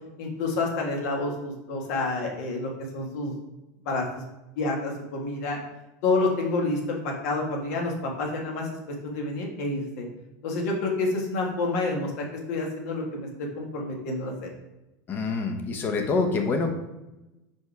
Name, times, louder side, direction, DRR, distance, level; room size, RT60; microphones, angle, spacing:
voice 1, 0.2-3.3 3.8-4.0 4.5-5.6 6.0-8.7 9.0-10.1 10.4-14.5, left 2 dB, 65° left, 0 dB, 1.8 m, -28 dB
voice 2, 15.1-16.7, left 3 dB, 20° left, 4 dB, 0.8 m, -26 dB
5.2 x 5.2 x 4.7 m, 0.98 s
supercardioid pair, 170°, 9 cm